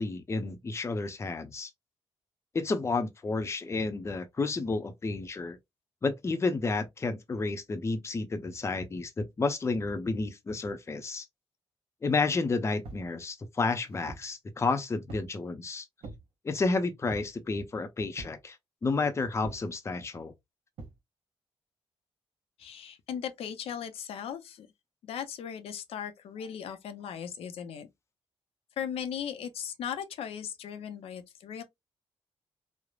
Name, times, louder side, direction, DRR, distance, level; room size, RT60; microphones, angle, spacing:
voice 1, 0.0-1.7 2.5-5.6 6.0-11.3 12.0-15.9 16.4-18.6 18.8-20.3, left 3 dB, 30° left, 0.6 m, -31 dB
sound 1, 12.8-13.1 13.7-14.3 15.1-15.4 16.0-16.3 17.1-17.4 18.2-18.5 19.4-19.7 20.8-21.0, right 3 dB, 80° right, 0.9 m, -45 dB
voice 2, 22.6-24.7 25.0-27.9 28.8-31.6, left 8 dB, 85° left, 0.5 m, -38 dB
3.1 x 2.0 x 2.3 m
cardioid pair, 100°, 10 cm